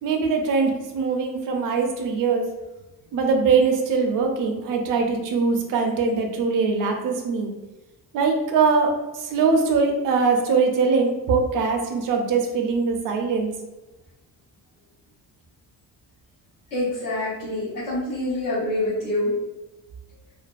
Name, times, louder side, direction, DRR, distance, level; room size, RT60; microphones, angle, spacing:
voice 1, 0.0-2.4 3.1-7.5 8.1-13.5, right 4 dB, 60° right, 2 dB, 0.5 m, -22 dB
voice 2, 16.7-19.3, left 1 dB, 70° left, -11 dB, 1.0 m, -26 dB
2.5 x 2.2 x 2.3 m, 1.1 s
cardioid pair, 170°, 36 cm